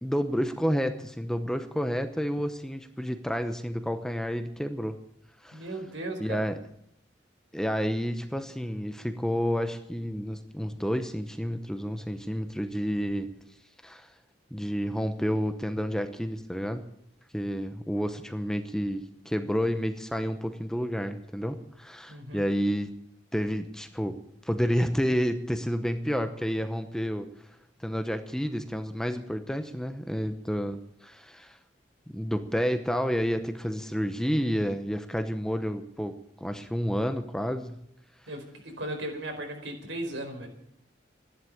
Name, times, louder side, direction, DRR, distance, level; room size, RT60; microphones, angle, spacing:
voice 1, 0.0-5.0 5.4-5.6 6.2-6.6 7.5-13.3 13.8-14.1 14.5-16.9 17.3-22.9 23.3-24.2 24.4-27.3 27.8-31.6 32.1-37.8, equal, 5° left, 7 dB, 0.8 m, -30 dB
voice 2, 5.5-6.5 22.1-22.4 38.3-40.5, right 1 dB, 80° right, 4 dB, 4.4 m, -36 dB
14.0 x 11.5 x 8.7 m, 0.75 s
head